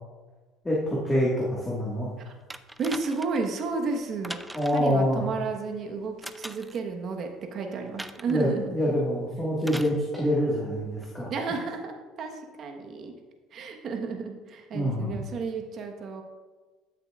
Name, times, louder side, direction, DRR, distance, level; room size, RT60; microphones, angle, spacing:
voice 1, 0.6-2.1 4.5-5.2 8.3-11.3 14.7-15.1, equal, 15° left, -6 dB, 1.7 m, -26 dB
sound 1, 2.5-3.5 4.2-4.9 6.2-6.8 8.0-8.4 9.6-10.0 11.0-11.1, right 1 dB, 5° right, 0.4 m, -40 dB
voice 2, 2.8-4.4 4.7-8.6 11.3-13.1 13.5-16.2, right 4 dB, 45° right, 3 dB, 1.2 m, -32 dB
12.5 x 6.7 x 2.4 m, 1.3 s
supercardioid pair, 110°, 0 cm